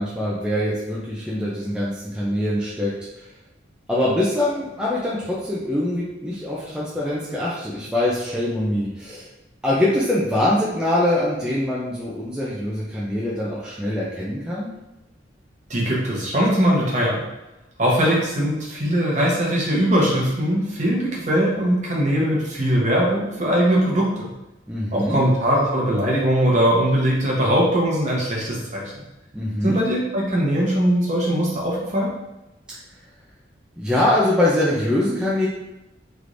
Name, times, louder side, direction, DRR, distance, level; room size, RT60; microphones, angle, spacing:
voice 1, 0.0-3.3 3.9-9.3 9.6-14.7 24.7-25.2 29.3-29.8 33.8-35.5, left 1 dB, 5° right, -7 dB, 0.4 m, -23 dB
voice 2, 15.7-17.2 17.8-24.3 24.9-28.9 29.6-32.1, equal, 40° right, -4 dB, 0.9 m, -20 dB
3.4 x 3.1 x 2.5 m, 0.96 s
head